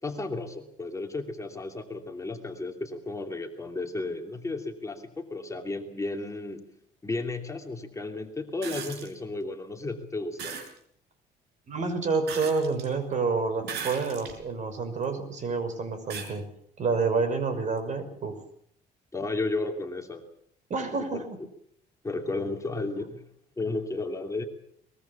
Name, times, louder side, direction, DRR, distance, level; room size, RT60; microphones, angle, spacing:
voice 1, 0.0-6.6 7.0-10.6 19.1-20.2 20.9-21.2 22.0-23.2 23.6-24.4, left 2 dB, 20° left, 3 dB, 2.8 m, -33 dB
sound 1, 8.6-9.1 10.4-10.7 12.3-12.9 13.6-14.4 15.0-15.1 16.1-16.3 17.8-17.9, right 6 dB, 75° right, 6.1 m, -37 dB
voice 2, 11.7-16.4 16.8-18.4 20.7-21.2, right 4 dB, 45° right, 10 dB, 5.7 m, -28 dB
22.5 x 21.5 x 7.2 m, 0.67 s
cardioid pair, 110°, 17 cm